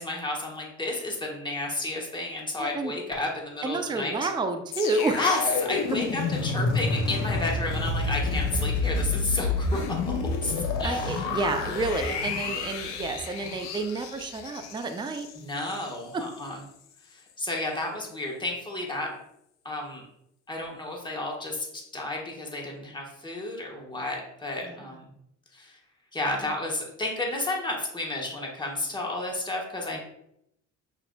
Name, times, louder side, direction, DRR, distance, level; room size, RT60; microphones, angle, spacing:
voice 1, 0.0-4.3 5.1-9.8 10.0-11.3 11.6-11.8 15.3-16.6 17.1-19.1 19.6-20.0 20.5-25.1 25.5-25.8 26.1-30.0, left 2 dB, 15° left, -1 dB, 1.2 m, -32 dB
voice 2, 2.6-2.9 3.6-5.2 10.8-15.3 16.1-16.2 24.6-24.8 29.9-30.0, right 3 dB, 15° right, 7 dB, 0.4 m, -30 dB
sound 1, 4.7-15.9 16.2-16.4, left 4 dB, 90° left, 0.6 m, -29 dB
5.7 x 2.4 x 2.2 m, 0.78 s
supercardioid pair, 60°, 36 cm